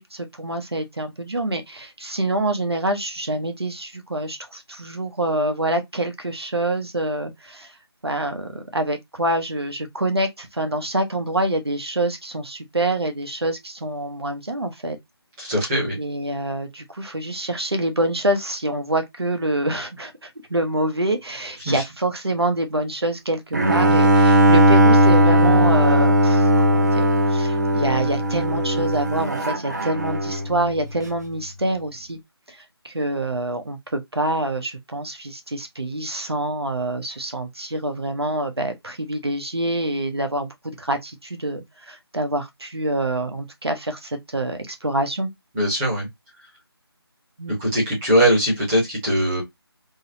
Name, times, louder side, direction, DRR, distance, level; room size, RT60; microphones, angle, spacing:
voice 1, 0.0-7.7 8.0-15.0 16.0-32.2 32.5-32.6 32.8-45.3 47.4-47.6, right 1 dB, 75° right, 0.9 m, -26 dB
voice 2, 15.4-16.0 21.7-21.8 45.5-46.1 47.6-49.4, equal, 5° right, 0.7 m, -20 dB
Bowed string instrument, 23.5-30.5, right 1 dB, 40° right, 0.6 m, -17 dB
3.8 x 2.0 x 2.7 m
figure-of-eight pair, 160°, 13 cm